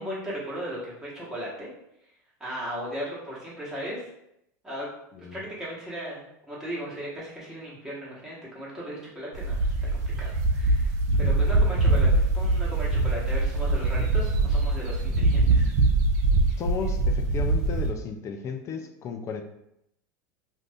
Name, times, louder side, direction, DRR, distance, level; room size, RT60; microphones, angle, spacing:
voice 1, 0.0-1.7 2.4-4.1 4.6-4.9 5.3-9.7 10.2-15.7, equal, 5° right, -7 dB, 1.3 m, -36 dB
voice 2, 5.1-5.4 16.6-19.4, left 5 dB, 30° left, 5 dB, 0.4 m, -34 dB
sound 1, 9.3-17.9, right 2 dB, 70° right, 0.5 m, -23 dB
2.6 x 2.5 x 3.4 m, 0.80 s
supercardioid pair, 120°, 10 cm